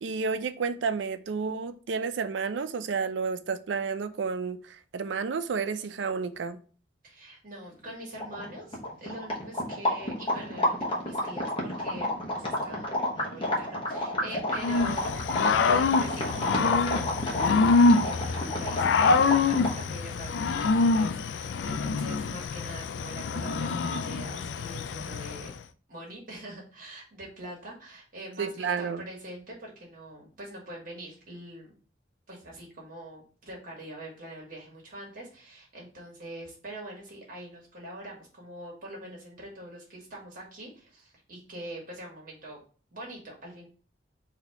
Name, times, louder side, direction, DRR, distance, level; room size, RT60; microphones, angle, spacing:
voice 1, 0.0-6.6 28.4-29.0, right 5 dB, 80° right, 0.4 m, -31 dB
voice 2, 7.0-25.5 25.9-31.7 32.3-42.6 42.9-43.7, right 1 dB, 50° right, 1.4 m, -44 dB
sound 1, 7.9-8.0 8.1-19.9, left 1 dB, 30° left, 1.1 m, -31 dB
Growling / Cricket, 14.6-25.5, left 4 dB, 75° left, 0.3 m, -25 dB
4.0 x 2.7 x 4.4 m
head